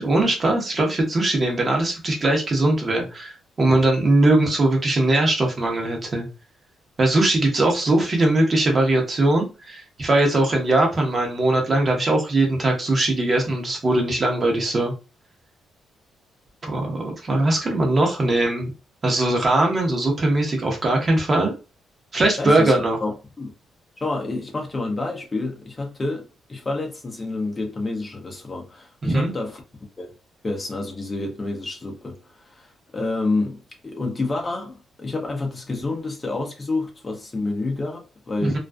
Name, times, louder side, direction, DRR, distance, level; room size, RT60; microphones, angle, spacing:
voice 1, 0.0-6.3 7.0-14.9 16.6-18.7 19.0-21.5 22.1-23.0 29.0-29.3 38.4-38.6, right 2 dB, 35° right, 0.9 m, -20 dB
voice 2, 22.4-22.7 23.0-23.5 24.0-29.6 30.0-30.1 30.4-32.2 32.4-38.6, left 2 dB, 25° left, 0.6 m, -28 dB
2.4 x 2.3 x 2.3 m
cardioid pair, 95°, 0 cm